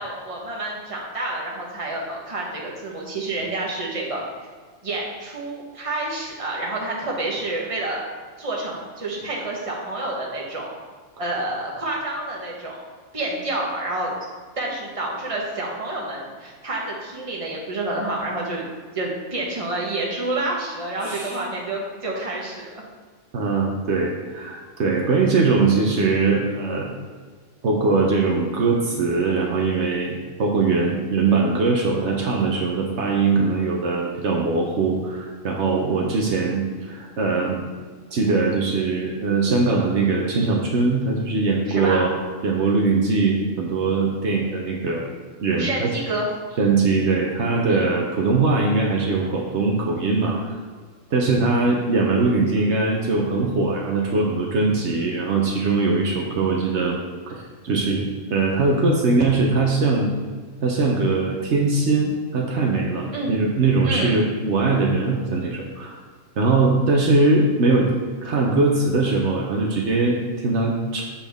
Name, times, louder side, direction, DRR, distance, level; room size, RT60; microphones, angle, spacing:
voice 1, 0.0-4.2 4.8-8.0 8.4-10.7 11.2-12.8 13.1-14.2 14.6-18.6 18.9-22.8 41.7-42.0 45.6-46.3 47.7-47.9 63.1-63.4 63.8-64.2, right 2 dB, 30° right, -3 dB, 1.3 m, -28 dB
voice 2, 21.0-21.4 23.3-26.9 27.6-37.7 38.1-42.1 42.4-45.1 45.4-45.9 46.6-50.6 51.1-57.0 57.3-60.1 60.6-66.0 66.4-67.9 68.2-71.0, right 3 dB, 70° right, -1 dB, 1.1 m, -21 dB
7.1 x 5.8 x 3.5 m, 1.5 s
omnidirectional pair, 1.2 m